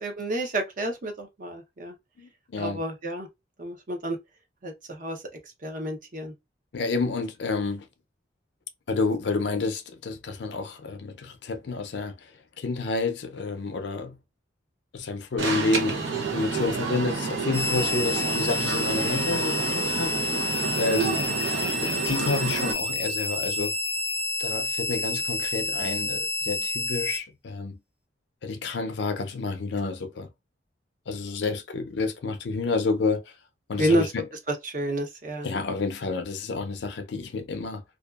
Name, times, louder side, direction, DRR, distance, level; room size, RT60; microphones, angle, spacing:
voice 1, 0.0-1.9 2.6-3.3 3.6-4.2 4.6-5.2 5.6-6.3 33.8-34.0 34.6-35.5, right 1 dB, 45° right, 0.7 m, -29 dB
voice 2, 2.2-2.8 6.7-7.9 8.9-12.2 12.6-14.2 14.9-20.2 20.8-21.2 21.8-23.8 24.4-27.8 28.4-30.3 31.1-33.2 33.7-34.3 35.4-37.8, left 3 dB, 70° left, 0.5 m, -29 dB
Alarm, 15.4-22.7, right 4 dB, 80° right, 0.8 m, -29 dB
sound 1, 17.5-27.2, left 2 dB, 5° right, 0.5 m, -29 dB
2.6 x 2.3 x 2.3 m
head